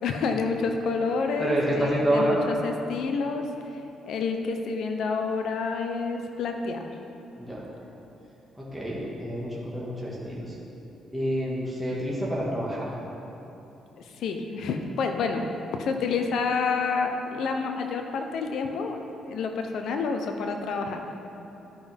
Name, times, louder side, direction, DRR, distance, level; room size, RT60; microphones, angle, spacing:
voice 1, 0.0-3.4 4.0-6.8 14.2-15.5 15.8-19.0 19.3-21.0, left 4 dB, 75° left, 4 dB, 0.7 m, -28 dB
voice 2, 1.4-2.4 7.4-7.6 8.6-10.5 11.1-12.9, equal, ahead, -6 dB, 1.8 m, -28 dB
13.0 x 5.5 x 3.6 m, 2.9 s
cardioid pair, 90°, 0 cm